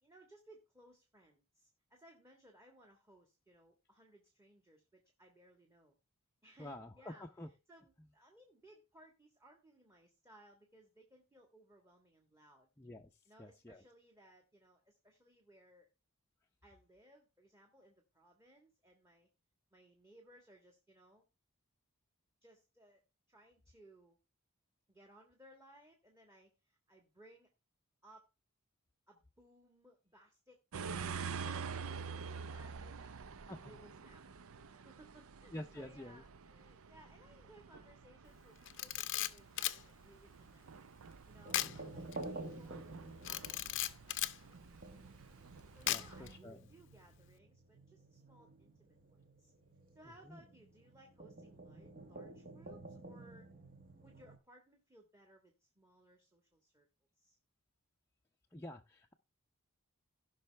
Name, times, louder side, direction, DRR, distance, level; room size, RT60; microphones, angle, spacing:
voice 1, 0.0-6.0 6.4-12.7 13.2-15.9 16.6-19.3 19.7-21.2 22.4-23.0 23.3-24.2 24.9-27.5 28.0-28.3 29.1-30.6 30.9-33.1 33.6-34.2 34.7-40.7 41.3-45.2 45.8-49.5 49.9-53.5 54.0-56.9 57.2-57.4, right 1 dB, 15° right, 2 dB, 1.5 m, -63 dB
voice 2, 6.6-7.5 12.8-13.1 13.4-13.8 33.5-33.8 35.5-36.2 41.6-42.0 45.8-46.6 50.2-50.4 58.5-59.1, left 1 dB, 10° left, 1 dB, 0.6 m, -49 dB
sound 1, 30.7-46.4, right 5 dB, 65° right, 0.6 m, -48 dB
Camera, 38.7-39.8 41.5-41.8 42.1-42.2 43.2-44.4 45.9-46.3, left 13 dB, 55° left, 0.6 m, -36 dB
sound 2, 41.4-54.4, right 2 dB, 40° right, 1.3 m, -51 dB
16.5 x 5.6 x 3.3 m, 0.26 s
head